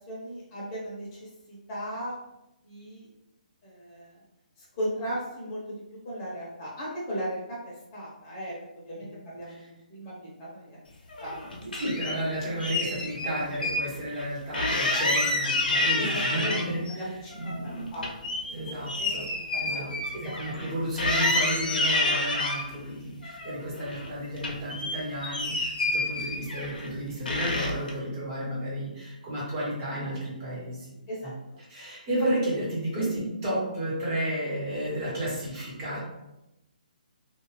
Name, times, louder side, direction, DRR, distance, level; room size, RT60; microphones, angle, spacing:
voice 1, 0.1-2.1 2.6-3.1 3.6-4.2 4.6-7.4 7.6-10.8 11.2-11.9 16.0-16.6 16.9-20.7 31.1-31.3, equal, 30° left, -6 dB, 0.8 m, -37 dB
sound 1, 11.1-12.2 12.6-13.8 14.1-14.2 14.5-16.9 17.3-20.7 21.0-22.6 23.2-24.1 24.4-26.9 27.3-27.9, left 2 dB, 85° left, 0.7 m, -29 dB
voice 2, 11.8-17.0 17.3-18.1 18.5-19.3 19.5-30.9 31.2-31.3 31.7-36.0, right 1 dB, 30° right, -6 dB, 1.2 m, -32 dB
2.5 x 2.4 x 3.2 m, 0.91 s
hypercardioid pair, 155°, 5 cm